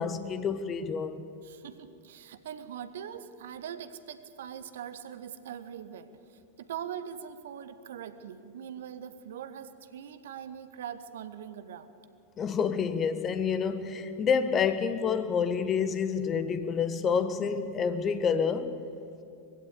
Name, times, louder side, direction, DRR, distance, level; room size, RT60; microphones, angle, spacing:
voice 1, 0.0-1.2 12.4-18.7, left 6 dB, 25° left, 1.2 m, -28 dB
voice 2, 1.4-11.9, right 9 dB, 60° right, 1.1 m, -42 dB
21.5 x 15.5 x 8.3 m
figure-of-eight pair, 90°, 0 cm